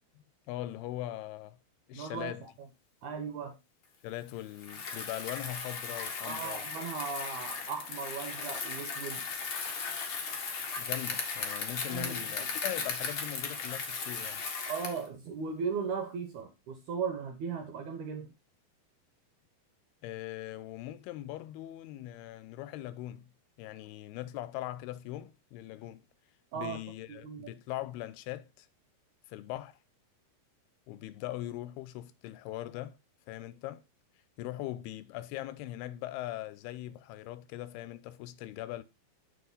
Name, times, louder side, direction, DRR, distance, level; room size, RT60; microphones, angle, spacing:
voice 1, 0.5-1.6 1.9-2.5 4.0-6.7 10.8-14.4 20.0-23.3 23.6-26.0 26.6-28.7 29.3-29.8 30.9-33.0 33.3-33.8 34.4-38.8, left 14 dB, 85° left, 2.6 m, -40 dB
voice 2, 1.9-2.5 3.0-3.6 6.2-9.3 11.9-12.5 14.7-18.3 26.5-26.8 27.1-27.5, right 6 dB, 75° right, 1.9 m, -37 dB
Bicycle, 4.6-15.1, left 5 dB, 65° left, 1.2 m, -37 dB
7.7 x 5.9 x 3.9 m
omnidirectional pair, 4.5 m